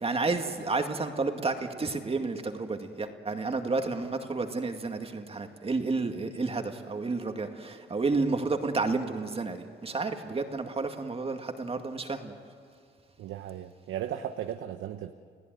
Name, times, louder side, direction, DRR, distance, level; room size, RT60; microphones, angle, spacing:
voice 1, 0.0-12.3, right 3 dB, 30° right, 5 dB, 2.2 m, -31 dB
voice 2, 13.2-15.1, right 10 dB, 85° right, 8 dB, 1.0 m, -36 dB
29.5 x 16.5 x 9.4 m, 2.2 s
cardioid pair, 90°, 20 cm